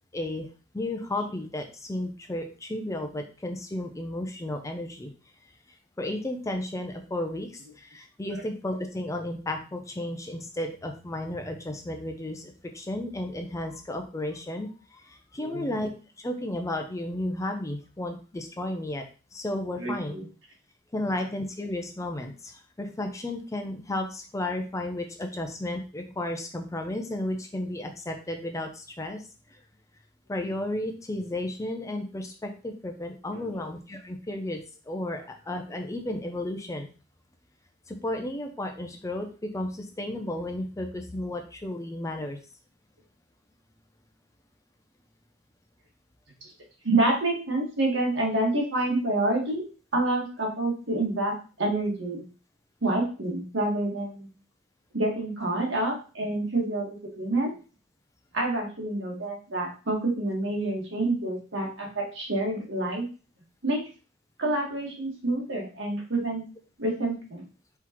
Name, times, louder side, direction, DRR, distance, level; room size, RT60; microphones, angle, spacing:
voice 1, 0.1-0.5 0.7-5.1 6.0-15.9 16.2-19.0 19.3-20.2 20.9-29.2 30.3-34.6 34.9-36.9 37.9-42.4, left 1 dB, 15° left, 4 dB, 0.5 m, -33 dB
voice 2, 15.4-15.8 19.8-20.3 33.3-33.6 46.4-46.5 46.8-49.6 49.9-52.2 52.8-54.3 54.9-57.5 58.3-63.0 63.6-63.8 64.4-66.4 66.8-67.4, right 2 dB, 70° right, -1 dB, 1.6 m, -28 dB
4.5 x 3.9 x 2.9 m, 0.35 s
head